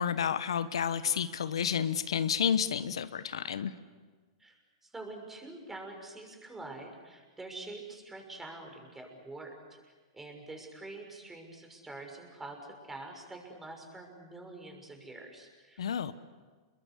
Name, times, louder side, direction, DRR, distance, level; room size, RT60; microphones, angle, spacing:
voice 1, 0.0-3.7 15.8-16.1, left 8 dB, 80° left, 14 dB, 1.1 m, -30 dB
voice 2, 4.8-9.5 10.1-12.6 12.9-15.9, right 2 dB, 10° right, 3 dB, 6.1 m, -46 dB
28.5 x 22.0 x 8.4 m, 1.4 s
hypercardioid pair, 120°, 3 cm